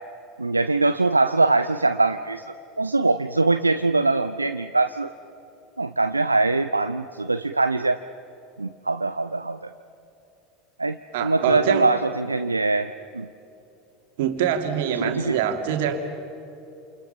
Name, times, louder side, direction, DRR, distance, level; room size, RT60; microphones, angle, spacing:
voice 1, 0.4-2.4 2.8-5.1 5.8-8.0 8.6-9.7 10.8-13.3 14.9-15.4, right 3 dB, 85° right, 10 dB, 0.5 m, -22 dB
voice 2, 11.1-11.9 14.2-16.0, right 9 dB, 60° right, 5 dB, 2.6 m, -24 dB
29.0 x 28.5 x 5.8 m, 2.8 s
figure-of-eight pair, 75°, 0 cm